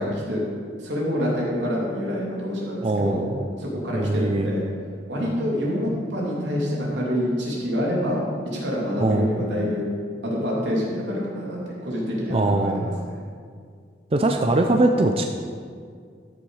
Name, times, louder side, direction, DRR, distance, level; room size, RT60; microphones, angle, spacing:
voice 1, 0.0-3.2 3.6-4.6 5.1-8.2 8.5-9.9 10.2-12.9, equal, 85° right, -4 dB, 3.0 m, -26 dB
voice 2, 2.8-3.5 3.9-4.5 9.0-9.4 12.3-12.9 14.1-15.2, right 2 dB, 35° right, 4 dB, 0.5 m, -22 dB
13.5 x 7.3 x 4.9 m, 2.1 s
head